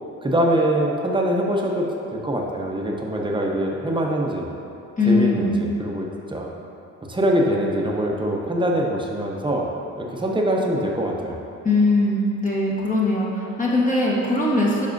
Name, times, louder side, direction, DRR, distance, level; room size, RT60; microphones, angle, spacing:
voice 1, 0.2-4.5 5.1-6.5 7.1-9.7 9.9-11.4, right 1 dB, 15° right, -1 dB, 0.9 m, -23 dB
voice 2, 5.0-5.6 11.6-14.9, left 2 dB, 25° left, -6 dB, 1.2 m, -20 dB
11.0 x 4.1 x 2.6 m, 2.7 s
cardioid pair, 90°, 30 cm